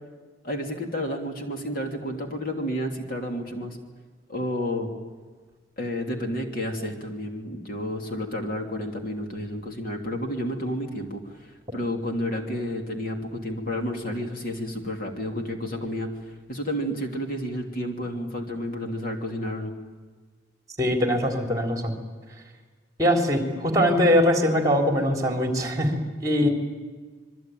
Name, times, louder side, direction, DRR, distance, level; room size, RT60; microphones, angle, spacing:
voice 1, 0.4-3.8 4.3-4.9 5.8-11.3 11.7-16.1 16.5-19.7 26.4-26.5, equal, 50° left, 3 dB, 3.0 m, -31 dB
voice 2, 20.8-22.0 23.0-26.5, equal, 20° right, 3 dB, 3.6 m, -22 dB
27.0 x 22.5 x 9.3 m, 1.4 s
head